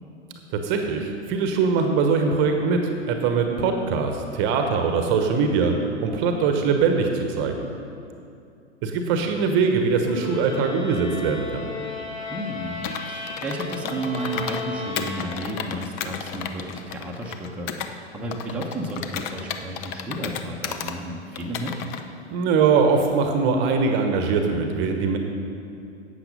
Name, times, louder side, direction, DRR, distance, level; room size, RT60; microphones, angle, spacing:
voice 1, 0.5-5.8 6.0-7.6 8.8-11.7 22.3-25.2, right 5 dB, 30° right, 5 dB, 1.1 m, -22 dB
sound 1, 10.0-15.7, left 4 dB, 60° left, 3.1 m, -34 dB
voice 2, 12.3-21.8, right 1 dB, 5° right, -3 dB, 1.0 m, -32 dB
Computer keyboard, 12.8-14.6 15.0-17.9 18.3-21.0 21.4-22.0, left 8 dB, 30° left, 0.7 m, -33 dB
12.0 x 8.4 x 5.4 m, 2.6 s
figure-of-eight pair, 105°, 35 cm